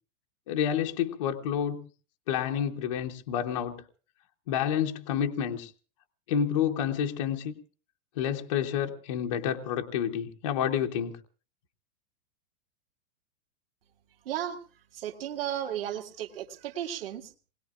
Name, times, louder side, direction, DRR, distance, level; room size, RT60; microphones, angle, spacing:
voice 1, 0.5-1.9 2.3-3.8 4.5-5.7 6.3-7.5 8.2-11.1, left 9 dB, 25° left, 2 dB, 0.7 m, -29 dB
voice 2, 14.3-14.6 14.9-17.4, right 10 dB, 45° right, 5 dB, 2.1 m, -34 dB
28.0 x 20.5 x 2.4 m, 0.38 s
supercardioid pair, 180°, 41 cm